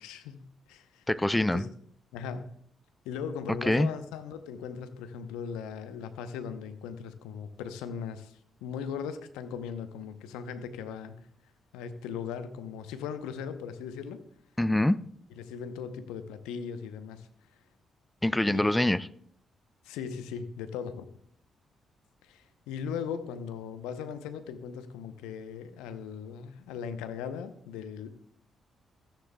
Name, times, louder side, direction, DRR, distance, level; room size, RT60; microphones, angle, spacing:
voice 1, 0.0-1.0 1.5-1.7 2.1-2.5 3.0-11.2 11.7-14.2 15.4-17.3 18.5-18.6 19.8-21.0 22.2-28.2, left 7 dB, 80° left, 10 dB, 0.7 m, -38 dB
voice 2, 1.1-1.7 3.6-3.9 14.6-15.0 18.2-19.1, left 1 dB, 10° left, 17 dB, 0.4 m, -24 dB
15.0 x 10.0 x 2.3 m, 0.64 s
hypercardioid pair, 40°, 0 cm